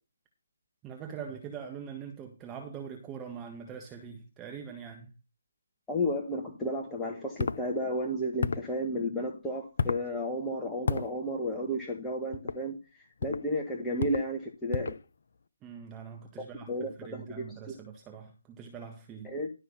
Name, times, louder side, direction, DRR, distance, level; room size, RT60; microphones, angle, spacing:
voice 1, 0.8-5.1 15.6-19.3, right 7 dB, 15° right, 1.5 m, -43 dB
voice 2, 5.9-14.9 16.7-17.7 19.2-19.5, equal, 5° left, 1.3 m, -33 dB
sound 1, 7.4-7.6 8.4-8.7 9.8-10.1 10.9-11.1 12.3-12.6 13.2-13.5 14.0-14.3 14.7-15.0, left 5 dB, 55° left, 0.8 m, -31 dB
12.0 x 5.7 x 5.7 m
figure-of-eight pair, 145°, 0 cm